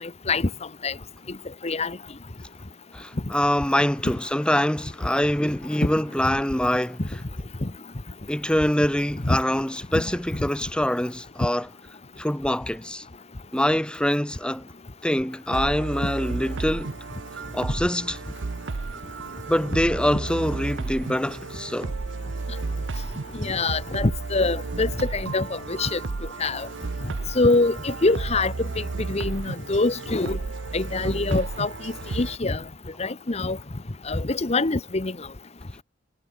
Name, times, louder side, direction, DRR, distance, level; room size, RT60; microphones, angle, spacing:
voice 1, 0.0-0.5 0.8-0.9 1.6-2.0 9.2-9.4 9.9-10.0 23.4-26.0 26.4-26.7 27.3-30.4 30.7-32.6 33.0-33.6 34.1-35.1, left 3 dB, 35° left, 1.0 m, -24 dB
voice 2, 2.9-7.0 8.3-11.7 12.2-13.0 13.5-14.7 15.0-16.9 17.5-18.2 19.5-21.9, left 1 dB, 5° left, 1.2 m, -24 dB
sound 1, 15.5-32.4, right 3 dB, 80° right, 0.7 m, -33 dB
head